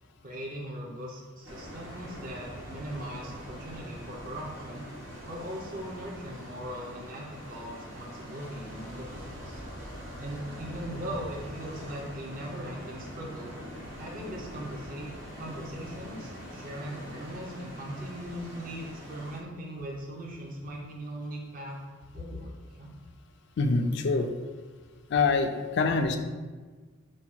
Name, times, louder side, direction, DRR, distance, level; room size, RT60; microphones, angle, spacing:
voice 1, 0.2-4.8 5.3-9.6 10.2-13.6 14.0-15.1 15.4-21.8 22.1-22.9, equal, 40° right, -1 dB, 0.5 m, -39 dB
sound 1, 1.4-19.4, equal, 65° right, 0.9 m, -43 dB
voice 2, 23.6-24.3 25.1-26.2, left 4 dB, 55° left, 6 dB, 0.3 m, -25 dB
4.5 x 2.2 x 4.3 m, 1.4 s
head